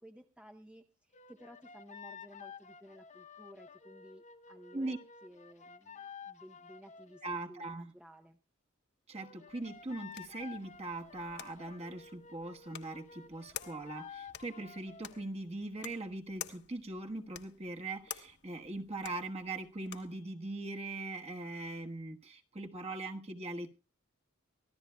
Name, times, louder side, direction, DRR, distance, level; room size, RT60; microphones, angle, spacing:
voice 1, 0.0-8.4, equal, 5° right, 5 dB, 0.7 m, -55 dB
sound 1, 1.1-7.3 9.1-15.3, left 6 dB, 35° left, 0.8 m, -52 dB
voice 2, 7.2-7.9 9.1-23.8, right 2 dB, 30° right, 3 dB, 1.3 m, -41 dB
sound 2, 9.5-20.2, left 10 dB, 55° left, 1.2 m, -51 dB
24.5 x 15.0 x 2.2 m, 0.31 s
head